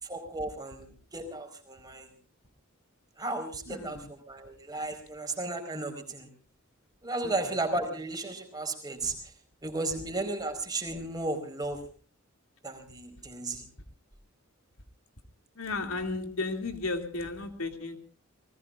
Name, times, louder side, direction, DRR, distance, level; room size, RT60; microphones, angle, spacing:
voice 1, 0.0-2.1 3.2-6.3 7.0-9.1 9.6-11.8 12.6-13.6, right 2 dB, 20° right, 5 dB, 4.6 m, -34 dB
voice 2, 3.7-4.1 7.2-7.4 15.5-18.0, left 3 dB, 90° left, 5 dB, 2.6 m, -34 dB
29.5 x 19.5 x 2.5 m, 0.40 s
head